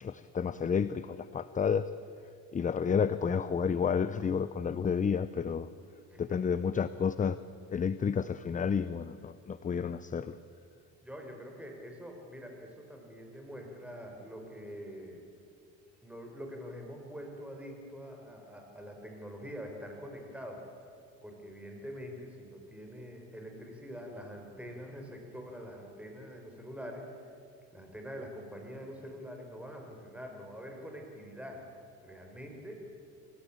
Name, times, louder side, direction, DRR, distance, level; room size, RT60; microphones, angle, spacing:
voice 1, 0.0-1.9 2.5-5.7 6.2-7.4 7.7-10.4, left 6 dB, 25° left, 14 dB, 0.6 m, -30 dB
voice 2, 11.0-15.3 16.0-20.6 21.2-27.3 27.7-31.6 32.0-32.8, equal, 5° right, 2 dB, 5.3 m, -45 dB
26.0 x 17.0 x 8.9 m, 2.4 s
cardioid pair, 105°, 34 cm